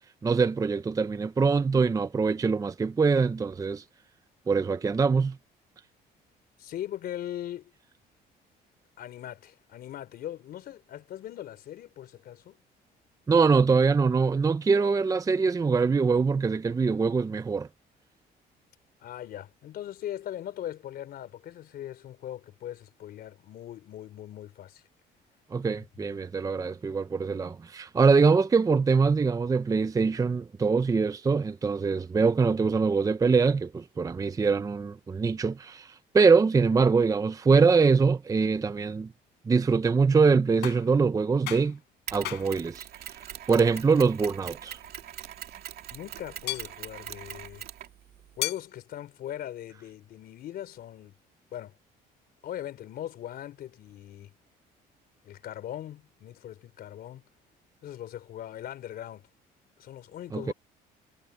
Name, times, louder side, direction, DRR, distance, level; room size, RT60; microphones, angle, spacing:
voice 1, 0.2-3.8 4.5-5.4 13.3-17.7 25.5-39.1 39.5-41.8 42.1-42.9 43.5-44.8 60.3-60.5, right 5 dB, 20° right, 0.6 m, -23 dB
voice 2, 6.6-7.7 9.0-12.6 19.0-24.8 25.6-25.7 26.0-26.2 45.9-47.7 48.4-51.1 51.5-51.8 52.4-54.3 55.2-57.3 57.8-59.3 59.8-60.5, left 12 dB, 65° left, 3.8 m, -40 dB
sound 1, 40.6-41.0 41.5-41.8 42.2-42.6 44.8-45.0 46.5-46.7 48.4-48.7, left 16 dB, 80° left, 6.5 m, -34 dB
Mechanisms, 42.1-48.4, right 11 dB, 65° right, 2.7 m, -42 dB
cardioid pair, 110°, 17 cm